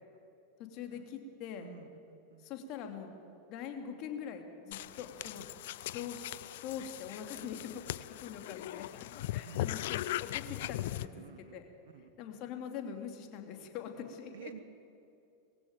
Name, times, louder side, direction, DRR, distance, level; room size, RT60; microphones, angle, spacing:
voice 1, 0.6-1.7 2.4-3.1 3.5-5.4 5.8-6.2 6.6-7.8 8.2-11.6 12.0-14.5, left 8 dB, 50° left, 4 dB, 2.9 m, -43 dB
voice 2, 1.6-2.5 5.3-5.5 5.9-6.1 9.4-9.8 11.1-11.6 11.8-12.1 13.9-14.6, right 10 dB, 70° right, 11 dB, 1.3 m, -52 dB
sound 1, 4.7-11.1, left 15 dB, 65° left, 0.6 m, -39 dB
21.0 x 15.5 x 9.2 m, 2.7 s
hypercardioid pair, 95°, 0 cm